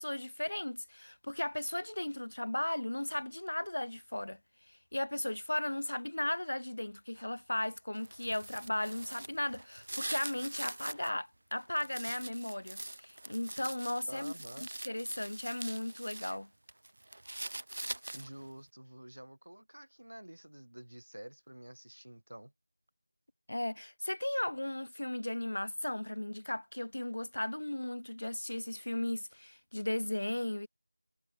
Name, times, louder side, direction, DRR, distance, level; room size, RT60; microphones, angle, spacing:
voice 1, 0.0-4.4 4.7-16.5 23.5-30.7, left 1 dB, 65° left, 1.8 m, -36 dB
sound 1, 7.9-11.1 11.5-16.4 16.7-18.5, right 1 dB, 50° right, 2.0 m, -43 dB
voice 2, 14.1-14.7 18.1-22.5, right 1 dB, 85° right, 5.8 m, -49 dB
figure-of-eight pair, 175°, 0 cm